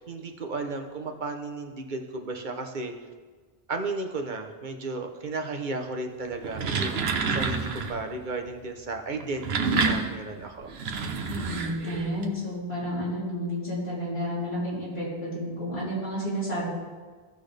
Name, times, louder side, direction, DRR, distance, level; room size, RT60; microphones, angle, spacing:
voice 1, 0.0-2.9 3.7-10.7, right 3 dB, 50° right, 4 dB, 1.1 m, -34 dB
sound 1, 6.3-8.0 9.2-12.2, right 4 dB, 80° right, 1.0 m, -28 dB
voice 2, 11.3-16.7, equal, 90° left, -8 dB, 3.9 m, -31 dB
16.0 x 6.2 x 3.4 m, 1.4 s
omnidirectional pair, 1.0 m